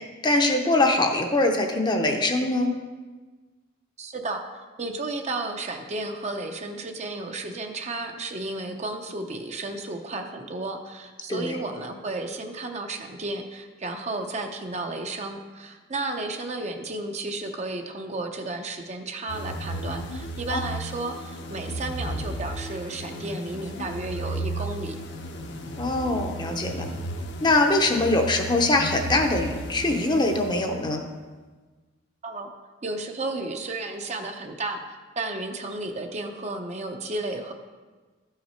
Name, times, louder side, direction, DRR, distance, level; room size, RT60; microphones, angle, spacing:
voice 1, 0.2-2.7 11.3-11.6 20.5-20.6 25.8-26.9 27.4-31.0, left 2 dB, 20° left, 3 dB, 0.7 m, -23 dB
voice 2, 4.0-25.0 32.2-32.5 32.8-37.5, right 2 dB, 35° right, 4 dB, 0.7 m, -33 dB
sound 1, 19.3-31.0, right 1 dB, 60° left, 0.9 m, -34 dB
12.5 x 5.8 x 4.4 m, 1.3 s
head